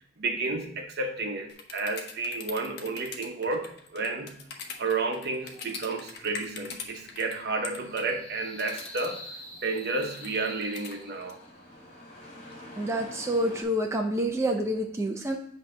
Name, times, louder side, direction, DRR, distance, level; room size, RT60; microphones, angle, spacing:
voice 1, 0.2-4.4 4.8-9.2 9.6-11.4, right 3 dB, 60° right, 4 dB, 0.9 m, -31 dB
sound 1, 1.5-7.3 7.6-8.1 8.6-9.1 9.7-11.3, left 5 dB, 60° left, 0.8 m, -41 dB
sound 2, 4.4-13.6, left 1 dB, 40° left, 2.0 m, -51 dB
sound 3, 5.6-11.6, left 1 dB, 5° left, 0.9 m, -48 dB
voice 2, 12.8-15.4, right 1 dB, 15° right, 1 dB, 0.5 m, -28 dB
8.1 x 2.8 x 4.9 m, 0.70 s
head